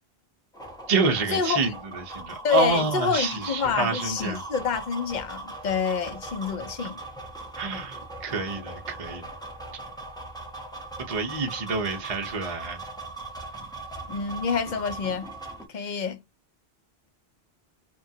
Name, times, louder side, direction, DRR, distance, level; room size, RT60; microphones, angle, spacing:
sound 1, 0.5-15.7, right 2 dB, 5° left, 0.7 m, -40 dB
voice 1, 0.9-4.4 7.6-9.3 9.7-9.8 11.1-12.8 15.7-16.0, right 4 dB, 40° right, 0.6 m, -28 dB
voice 2, 2.4-7.0 14.1-15.3 15.7-16.2, left 6 dB, 55° left, 0.6 m, -27 dB
2.9 x 2.3 x 2.7 m
omnidirectional pair, 1.1 m